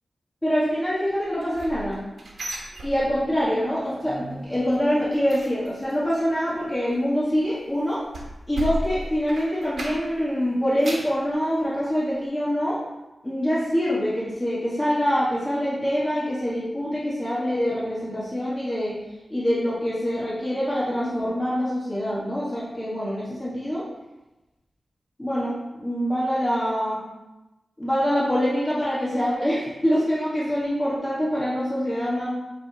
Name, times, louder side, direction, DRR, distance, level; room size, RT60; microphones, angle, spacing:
voice 1, 0.4-2.0 2.8-8.1 8.5-12.8 13.2-19.0 19.3-23.8 25.2-27.0 27.8-32.3, equal, 15° left, -8 dB, 1.9 m, -25 dB
sound 1, 1.2-3.5 3.8-4.2 4.5-10.3 10.6-11.2 11.7-11.8 12.2-12.3, right 1 dB, 65° right, 1.3 m, -36 dB
7.7 x 3.7 x 4.3 m, 1.0 s
wide cardioid pair, 90°, 0 cm